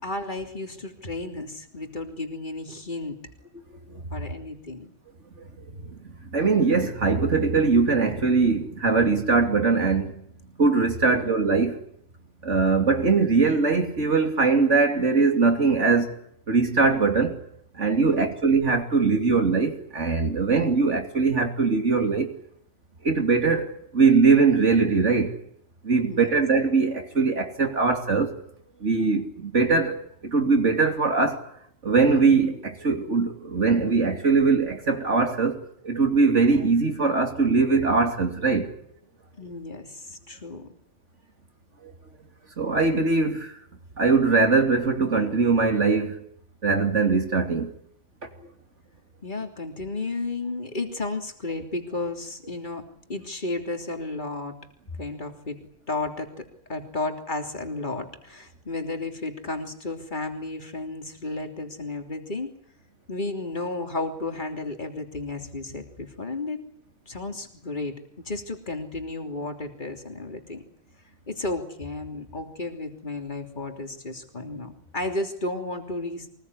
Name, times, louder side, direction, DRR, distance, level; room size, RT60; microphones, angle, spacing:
voice 1, 0.0-3.2 4.1-4.9 11.0-11.3 18.0-18.4 26.0-26.3 39.4-40.8 49.2-54.6 55.0-55.6 55.9-62.5 63.1-66.6 67.1-68.0 68.2-70.6 71.3-76.3, left 2 dB, 40° left, 3.4 m, -33 dB
voice 2, 6.3-10.1 10.6-11.8 12.4-16.1 16.5-17.4 17.8-22.3 23.0-25.3 25.8-28.3 28.8-31.4 31.8-38.7 42.6-43.6 44.0-46.2 46.6-47.7, right 4 dB, 70° right, 3.1 m, -21 dB
24.0 x 20.5 x 9.8 m
omnidirectional pair, 1.3 m